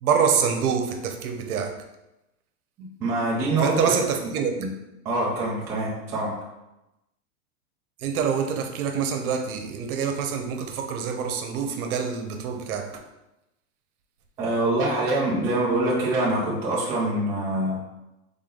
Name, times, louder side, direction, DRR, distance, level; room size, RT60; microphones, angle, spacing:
voice 1, 0.0-1.7 3.6-4.5 8.0-12.9, right 6 dB, 70° right, 5 dB, 0.9 m, -26 dB
voice 2, 3.0-4.0 4.6-4.7 5.0-6.3 14.4-17.8, right 2 dB, 10° right, -6 dB, 0.3 m, -24 dB
3.8 x 3.7 x 3.8 m, 0.95 s
hypercardioid pair, 135°, 45 cm